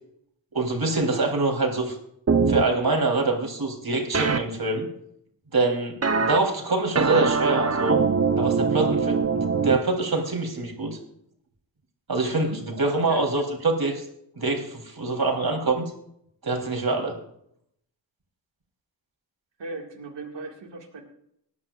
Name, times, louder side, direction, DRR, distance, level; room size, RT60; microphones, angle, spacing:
voice 1, 0.5-2.0 2.5-4.9 5.5-8.0 8.4-11.0 12.1-14.0 14.4-15.9 16.4-17.2, right 3 dB, 55° right, 1 dB, 3.7 m, -25 dB
sound 1, 2.3-2.6 4.1-4.4 6.0-6.4 6.9-9.8, right 5 dB, 35° right, 0.9 m, -22 dB
voice 2, 12.3-13.3 19.6-21.0, right 3 dB, 75° right, 1 dB, 2.1 m, -38 dB
19.0 x 11.0 x 2.5 m, 0.72 s
cardioid pair, 45°, 44 cm